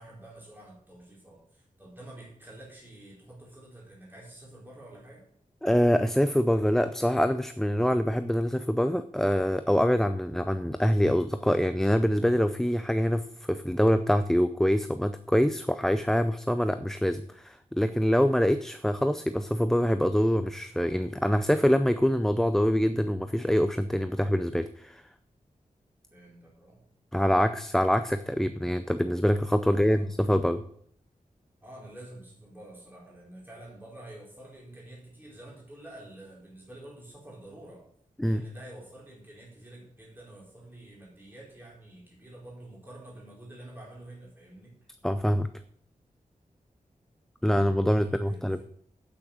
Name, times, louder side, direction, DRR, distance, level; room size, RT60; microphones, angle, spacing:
voice 1, 0.0-5.2 26.1-26.8 29.6-30.1 31.6-37.8 38.2-44.7 47.8-48.6, right 1 dB, 15° right, -4 dB, 4.3 m, -48 dB
voice 2, 5.6-25.0 27.1-30.6 38.2-38.4 45.0-45.5 47.4-48.6, equal, 5° left, 10 dB, 0.5 m, -25 dB
8.7 x 8.6 x 6.4 m, 0.64 s
wide cardioid pair, 110°, 14 cm